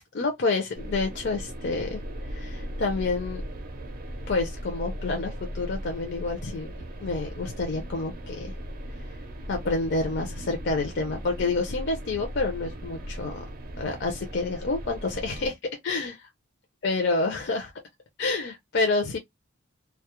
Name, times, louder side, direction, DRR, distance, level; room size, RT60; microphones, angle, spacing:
voice 1, 0.1-2.0 2.3-3.4 4.3-6.7 7.0-8.5 9.5-13.4 13.8-16.3 16.8-17.7 18.2-19.2, left 3 dB, 55° left, 0.5 m, -28 dB
sound 1, 0.8-15.5, equal, 45° right, 0.5 m, -37 dB
2.2 x 2.0 x 2.9 m
head